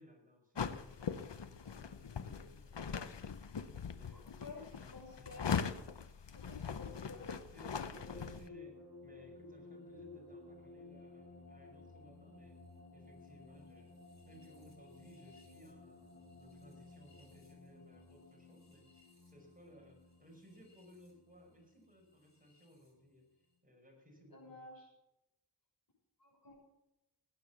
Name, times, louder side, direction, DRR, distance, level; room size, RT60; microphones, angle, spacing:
voice 1, 0.0-3.1 3.9-4.7 5.2-5.4 6.6-7.1 7.5-12.6 12.9-14.0 14.2-23.3 23.6-24.6, equal, 20° right, 1 dB, 5.6 m, -61 dB
sound 1, 0.6-8.5, left 6 dB, 85° left, 0.8 m, -41 dB
voice 2, 4.1-5.5 6.3-7.3 24.3-24.9 26.2-26.5, left 3 dB, 55° left, -2 dB, 6.5 m, -52 dB
sound 2, 7.9-22.9, left 2 dB, 40° left, 4.5 m, -56 dB
17.0 x 9.3 x 7.0 m, 0.96 s
wide cardioid pair, 45°, 41 cm